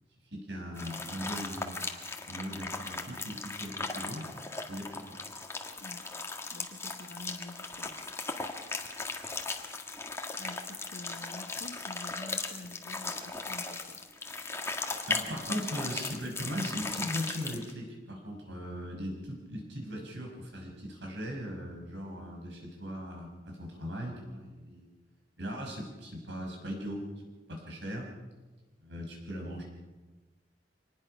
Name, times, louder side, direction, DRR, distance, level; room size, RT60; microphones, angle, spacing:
voice 1, 0.3-1.8 2.3-4.3 4.7-5.2 15.1-24.9 25.4-27.1 27.5-28.1 28.8-29.6, equal, 80° right, 1 dB, 6.2 m, -39 dB
sound 1, 0.8-17.7, left 3 dB, 15° left, 1.7 m, -38 dB
voice 2, 6.5-8.0 10.4-14.0, left 2 dB, 65° left, 8 dB, 1.5 m, -47 dB
25.0 x 20.0 x 5.8 m, 1.2 s
head